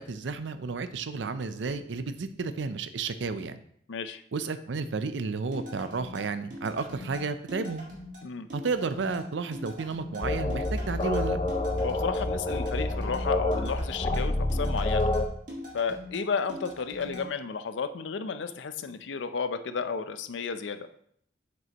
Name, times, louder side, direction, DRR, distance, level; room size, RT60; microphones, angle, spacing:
voice 1, 0.0-3.6 4.3-7.8 8.5-11.4, right 4 dB, 85° right, 11 dB, 0.5 m, -32 dB
voice 2, 3.9-4.2 8.2-8.5 11.8-15.1 15.7-20.9, left 5 dB, 90° left, 10 dB, 0.5 m, -32 dB
sound 1, 5.5-17.2, left 1 dB, 45° right, 1.8 m, -42 dB
sound 2, 10.2-15.3, left 2 dB, 30° left, 0.5 m, -28 dB
7.7 x 5.3 x 2.9 m, 0.66 s
head